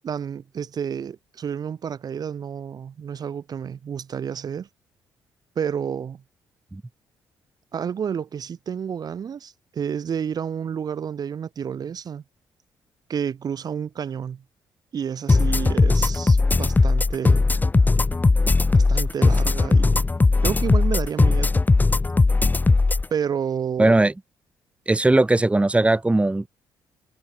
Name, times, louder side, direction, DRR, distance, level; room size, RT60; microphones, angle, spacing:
voice 1, 0.0-4.7 5.5-6.2 7.7-12.2 13.1-14.4 14.9-17.4 18.7-20.0 20.4-21.5 23.1-23.9, right 7 dB, 55° right, 3.3 m, -30 dB
sound 1, 15.3-23.0, left 3 dB, 20° left, 0.9 m, -18 dB
voice 2, 23.8-24.1 24.9-26.5, right 2 dB, 15° right, 2.4 m, -18 dB
supercardioid pair, 70°, 8 cm